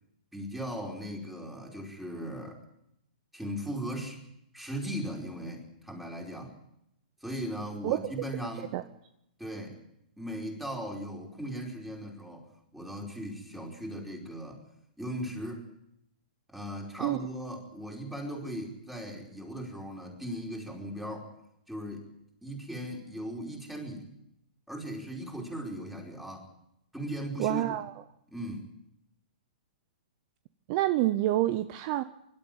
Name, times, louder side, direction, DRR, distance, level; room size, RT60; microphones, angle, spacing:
voice 1, 0.3-2.6 3.3-4.2 4.5-6.5 7.2-8.8 9.4-9.8 10.2-14.6 15.0-15.6 16.5-21.3 21.7-22.1 22.4-24.1 24.7-26.5 26.9-27.6 28.3-28.7, equal, 5° right, -1 dB, 4.9 m, -38 dB
voice 2, 27.4-27.9 30.7-32.0, right 15 dB, 40° right, 12 dB, 0.8 m, -27 dB
25.0 x 12.5 x 9.3 m, 0.79 s
hypercardioid pair, 130°, 5 cm